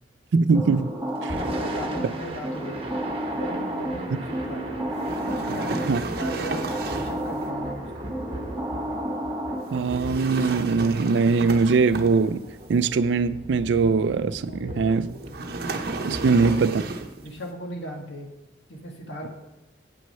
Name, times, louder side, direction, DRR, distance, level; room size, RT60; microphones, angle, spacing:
voice 1, 0.3-0.9 1.2-1.3 5.9-6.0 9.7-12.4 12.7-15.1 16.0-16.8, right 4 dB, 75° right, 0.4 m, -21 dB
sound 1, 0.5-10.0, right 1 dB, 10° right, 2.5 m, -31 dB
Thunder / Rain, 1.2-17.4, right 1 dB, 30° right, 1.0 m, -38 dB
voice 2, 1.3-3.0 3.3-4.8 5.2-8.1 14.5-15.4 16.0-16.9 17.2-18.3 18.7-19.3, equal, 80° left, 1.7 m, -38 dB
sound 2, 5.0-7.3 9.8-12.5 15.3-17.2, right 3 dB, 55° right, 0.8 m, -33 dB
8.5 x 6.2 x 5.5 m
head